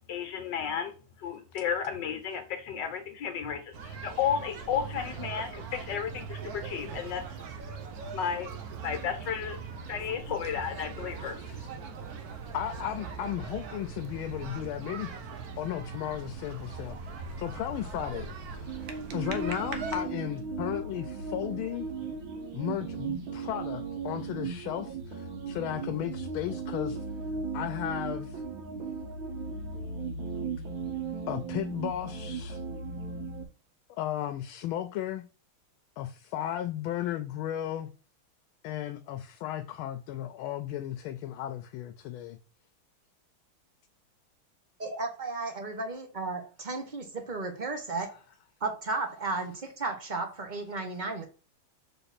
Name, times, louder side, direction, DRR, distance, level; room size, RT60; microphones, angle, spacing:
voice 1, 0.1-7.4 8.1-8.5 8.8-9.6 9.9-11.4, left 7 dB, 65° left, 1.6 m, -33 dB
sound 1, 3.7-20.0, right 5 dB, 60° right, 1.1 m, -40 dB
voice 2, 11.2-11.7 12.5-15.1 15.6-17.0 17.4-18.9 19.1-21.9 22.5-27.0 27.5-28.4 31.3-32.6 33.9-35.2 36.0-37.9 38.6-42.4, left 12 dB, 85° left, 1.4 m, -35 dB
sound 2, 18.7-33.4, right 4 dB, 80° right, 2.2 m, -36 dB
voice 3, 44.8-48.1 48.6-51.3, right 3 dB, 30° right, 0.9 m, -34 dB
6.8 x 3.6 x 4.2 m
omnidirectional pair, 2.2 m